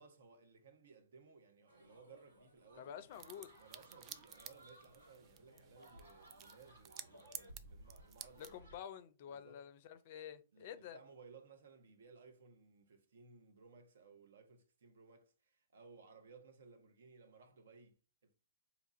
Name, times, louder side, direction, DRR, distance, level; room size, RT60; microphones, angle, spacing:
voice 1, 0.0-2.9 3.6-8.8 9.3-9.7 10.5-18.3, right 4 dB, 65° right, 0.7 m, -61 dB
sound 1, 1.7-8.8, right 1 dB, 90° right, 1.8 m, -61 dB
voice 2, 2.7-3.5 8.4-11.0, left 9 dB, 50° left, 0.4 m, -50 dB
sound 2, 3.1-8.6, right 11 dB, 30° right, 0.3 m, -54 dB
2.8 x 2.4 x 4.0 m
figure-of-eight pair, 110°, 0 cm